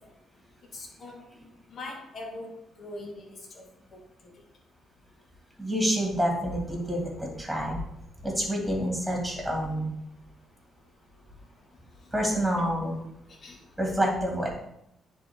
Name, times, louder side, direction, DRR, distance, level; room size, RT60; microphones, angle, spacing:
voice 1, 0.7-1.2 1.7-3.6 4.2-4.3 12.4-12.7 13.4-13.6, left 2 dB, 50° left, 0 dB, 1.7 m, -42 dB
voice 2, 5.6-7.8 8.2-9.9 12.1-13.0 13.8-14.5, equal, 5° right, -1 dB, 2.2 m, -28 dB
9.9 x 3.8 x 3.6 m, 0.79 s
cardioid pair, 90°, 0 cm